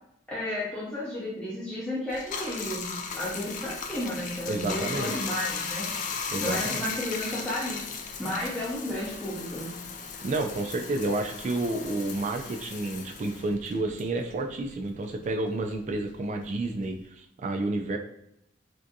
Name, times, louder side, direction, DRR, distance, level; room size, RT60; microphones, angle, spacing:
voice 1, 0.3-5.9 6.4-7.8 8.2-9.7, left 1 dB, 5° left, -9 dB, 0.6 m, -33 dB
Bathtub (filling or washing), 2.1-14.9 15.2-17.1, left 5 dB, 40° left, 0.3 m, -37 dB
voice 2, 4.5-5.1 6.3-6.8 10.2-18.0, right 2 dB, 40° right, 4 dB, 0.3 m, -30 dB
3.3 x 2.6 x 2.6 m, 0.77 s
head